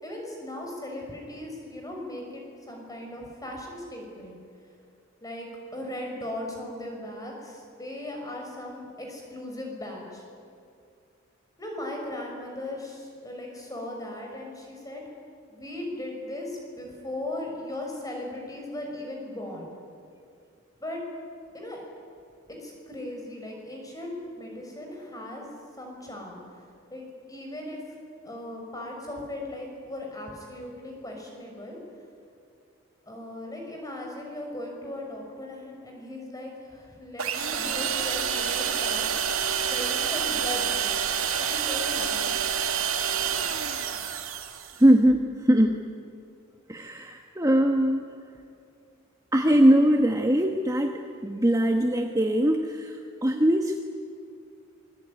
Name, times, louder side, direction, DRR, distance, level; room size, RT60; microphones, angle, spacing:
voice 1, 0.0-4.4 5.2-10.2 11.6-15.0 15.5-19.7 20.8-21.0 21.5-21.8 22.6-25.4 25.8-26.4 26.9-27.8 28.2-31.8 33.1-39.1 39.6-40.9 41.3-42.3, left 1 dB, 15° left, 0 dB, 6.2 m, -38 dB
sound 1, 37.2-44.8, right 7 dB, 80° right, 2.3 m, -28 dB
voice 2, 44.8-45.8 46.7-48.0 49.3-53.8, right 1 dB, 15° right, 3 dB, 1.2 m, -21 dB
26.0 x 22.0 x 9.8 m, 2.4 s
head